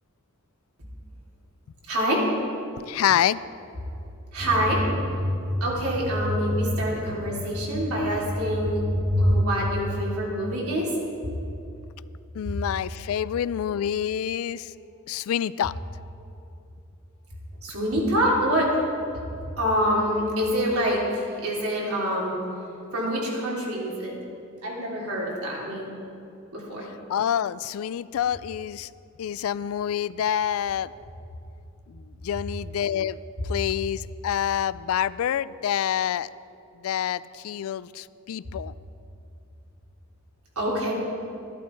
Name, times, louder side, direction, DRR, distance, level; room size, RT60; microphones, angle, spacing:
voice 1, 1.9-2.2 4.3-4.8 5.6-8.8 9.2-10.9 17.6-18.7 19.6-22.3 22.9-24.1 24.6-26.0 26.5-26.9 40.5-40.9, equal, 90° right, -4 dB, 3.2 m, -26 dB
voice 2, 2.9-3.4 12.3-14.7 15.1-15.7 27.1-28.9 29.2-30.9 31.9-33.2 33.5-36.3 36.8-38.7, left 9 dB, 75° left, 18 dB, 0.3 m, -27 dB
sound 1, 4.4-9.4, equal, 20° right, 1.7 m, -27 dB
14.0 x 11.5 x 4.5 m, 2.7 s
head